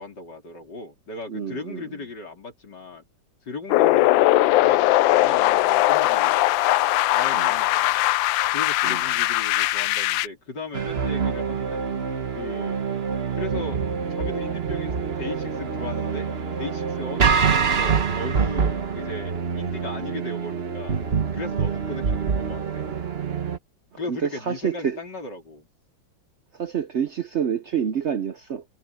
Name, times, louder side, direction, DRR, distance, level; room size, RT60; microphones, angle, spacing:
voice 1, 0.0-3.0 3.5-6.4 7.1-8.0 8.5-11.8 12.4-12.8 13.4-13.8 14.1-16.3 16.6-21.0 21.3-22.9 24.0-25.7, left 3 dB, 65° left, 4.4 m, -37 dB
voice 2, 1.3-1.8 3.8-4.0 7.3-7.5 8.8-9.0 24.1-25.0 26.6-28.6, right 8 dB, 60° right, 0.7 m, -28 dB
sound 1, 3.7-10.3, left 16 dB, 90° left, 1.3 m, -20 dB
sound 2, 10.7-23.6, right 6 dB, 40° right, 1.3 m, -26 dB
omnidirectional pair, 2.0 m